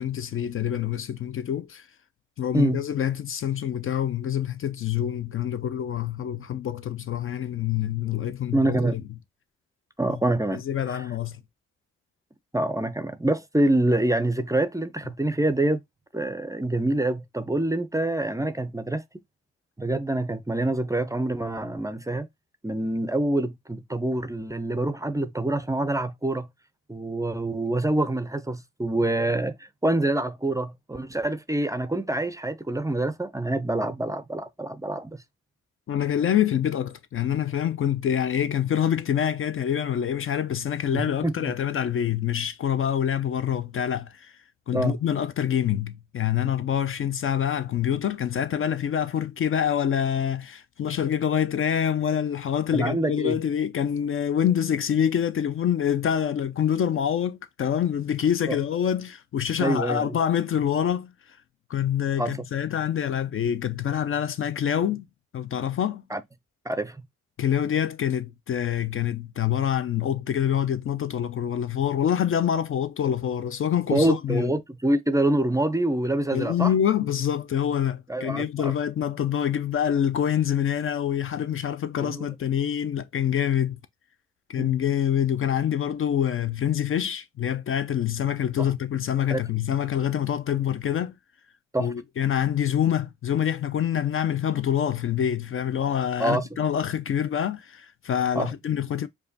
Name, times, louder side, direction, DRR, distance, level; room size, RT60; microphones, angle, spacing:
voice 1, 0.0-1.9 2.4-9.0 10.5-11.4 35.9-44.4 44.7-61.1 61.7-65.1 65.3-66.0 67.4-74.5 76.3-83.8 84.5-91.1 91.8-99.1, left 9 dB, 45° left, 0.4 m, -26 dB
voice 2, 8.5-9.0 10.0-10.6 10.9-11.0 12.5-15.8 16.1-19.0 19.8-22.3 22.6-26.5 26.9-35.1 40.9-41.4 44.7-45.0 52.7-53.4 58.5-58.6 59.6-60.2 62.2-62.5 66.1-66.2 66.7-67.0 73.9-76.7 78.1-78.7 82.0-82.3 84.6-84.7 88.6-88.7 89.3-89.4 91.7-91.9 96.2-96.5 98.3-98.5, right 1 dB, 10° right, 0.4 m, -26 dB
4.8 x 2.2 x 2.7 m
hypercardioid pair, 40°, 30 cm